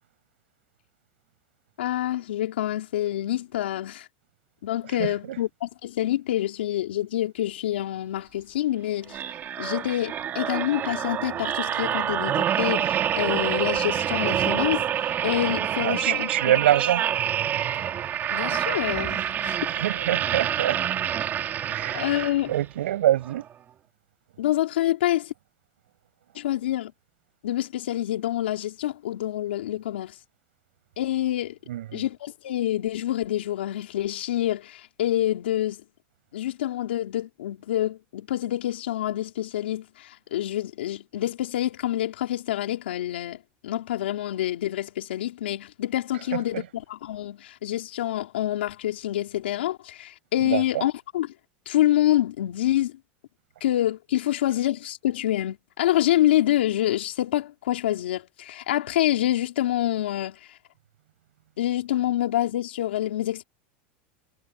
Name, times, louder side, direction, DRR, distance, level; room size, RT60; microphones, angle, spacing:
voice 1, 1.8-4.1 4.6-9.2 9.6-16.6 18.3-19.6 21.9-22.5 24.4-25.3 26.3-26.9 27.4-30.2 31.0-31.6 31.9-35.8 36.3-51.3 51.7-53.0 53.6-60.4 61.6-63.4, left 13 dB, 90° left, 3.7 m, -27 dB
voice 2, 5.0-5.4 15.8-17.0 19.7-20.8 21.7-22.0 22.5-23.5 31.7-32.0 46.3-46.7 50.4-50.9, right 13 dB, 90° right, 6.3 m, -25 dB
sound 1, 9.1-22.7 23.2-23.4, right 10 dB, 35° right, 1.9 m, -27 dB
supercardioid pair, 120°, 6 cm